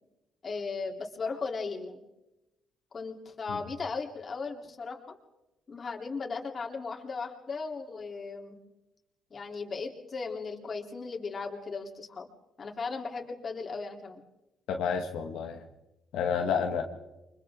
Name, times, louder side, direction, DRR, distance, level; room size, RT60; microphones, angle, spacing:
voice 1, 0.4-2.0 2.9-5.2 5.7-8.6 9.3-12.3 12.6-14.2, left 4 dB, 40° left, 2 dB, 3.5 m, -37 dB
voice 2, 14.7-15.6 16.1-16.8, left 6 dB, 85° left, 3 dB, 1.8 m, -30 dB
30.0 x 25.0 x 3.8 m, 0.99 s
cardioid pair, 90°, 0 cm